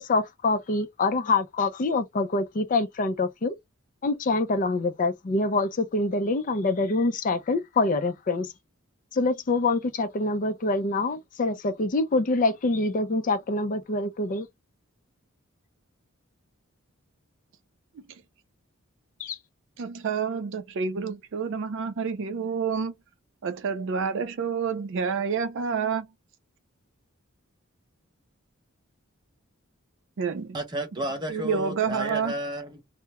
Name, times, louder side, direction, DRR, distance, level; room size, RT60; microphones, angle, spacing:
voice 1, 0.0-3.5 4.0-8.5 9.1-14.5 19.2-19.4, left 3 dB, 40° left, 0.4 m, -25 dB
voice 2, 19.8-22.9 23.4-26.1 30.2-30.6 31.3-32.3, right 6 dB, 60° right, 0.4 m, -28 dB
voice 3, 30.5-32.8, equal, 20° right, 0.8 m, -32 dB
2.2 x 2.1 x 2.8 m
head